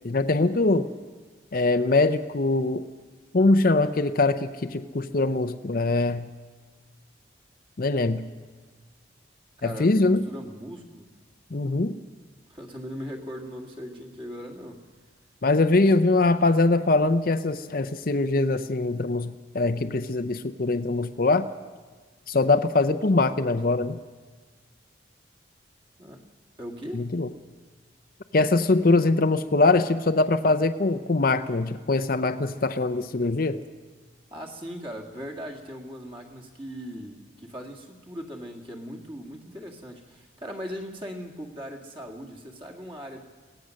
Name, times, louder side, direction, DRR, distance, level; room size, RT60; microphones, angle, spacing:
voice 1, 0.0-0.9 1.5-2.8 3.3-6.3 7.8-8.3 9.6-10.2 11.5-12.0 15.4-21.5 22.3-24.0 26.9-27.3 28.3-33.6, left 2 dB, 45° left, 10 dB, 0.6 m, -22 dB
voice 2, 9.6-11.1 12.5-14.9 15.7-16.1 26.0-26.2 26.6-27.0 27.4-27.5 34.3-43.2, equal, 25° right, 1 dB, 2.0 m, -39 dB
23.5 x 17.5 x 6.4 m, 1.4 s
head